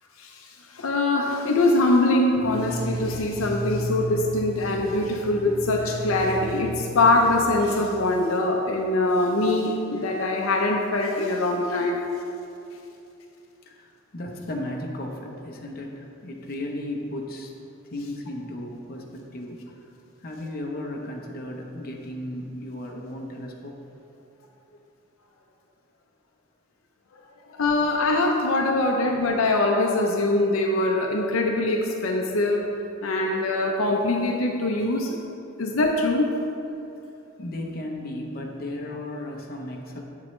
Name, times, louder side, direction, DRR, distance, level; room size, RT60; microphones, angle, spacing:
voice 1, 0.2-12.0 27.5-32.7 33.0-35.2 35.6-36.4, left 2 dB, 80° left, 1 dB, 0.6 m, -23 dB
sound 1, 2.3-8.3, right 1 dB, 25° right, 0.9 m, -33 dB
voice 2, 13.7-17.5 17.9-19.6 20.2-23.8 37.4-40.0, left 1 dB, 45° left, 0 dB, 0.9 m, -35 dB
7.6 x 7.3 x 3.2 m, 2.7 s
head